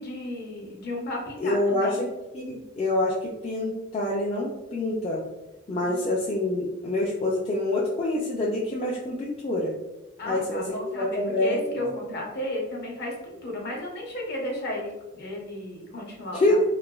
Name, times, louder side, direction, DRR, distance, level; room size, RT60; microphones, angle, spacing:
voice 1, 0.0-2.1 5.8-6.1 10.2-16.6, left 1 dB, 55° left, -1 dB, 0.7 m, -34 dB
voice 2, 1.4-2.1 2.3-5.2 5.7-9.7 10.3-11.9 16.3-16.6, left 1 dB, 30° left, -4 dB, 0.3 m, -26 dB
3.1 x 2.1 x 2.2 m, 1.0 s
head